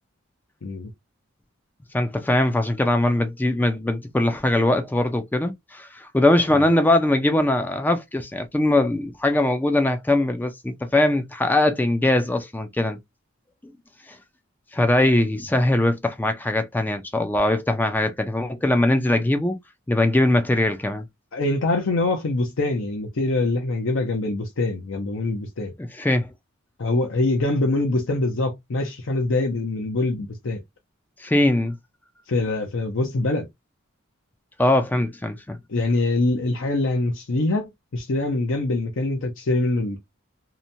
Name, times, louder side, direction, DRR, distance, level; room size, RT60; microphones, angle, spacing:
voice 1, 1.9-13.0 14.1-14.2 14.7-19.6 19.9-21.0 25.9-26.3 31.2-31.7 34.6-35.6, left 1 dB, 10° left, 0.3 m, -21 dB
voice 2, 21.3-25.7 26.8-30.6 32.3-33.5 35.7-40.0, left 2 dB, 65° left, 0.6 m, -24 dB
2.8 x 2.1 x 2.6 m
head